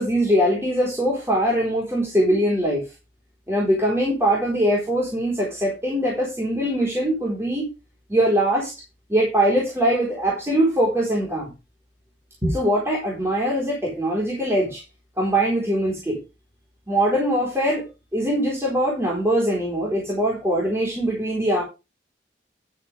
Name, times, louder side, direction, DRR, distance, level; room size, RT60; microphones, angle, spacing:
voice 1, 0.0-2.8 3.5-7.7 8.1-8.7 9.1-11.5 12.4-14.8 15.2-16.2 16.9-17.9 18.1-21.6, right 1 dB, 15° right, -3 dB, 4.0 m, -22 dB
11.0 x 9.7 x 3.4 m, 0.27 s
head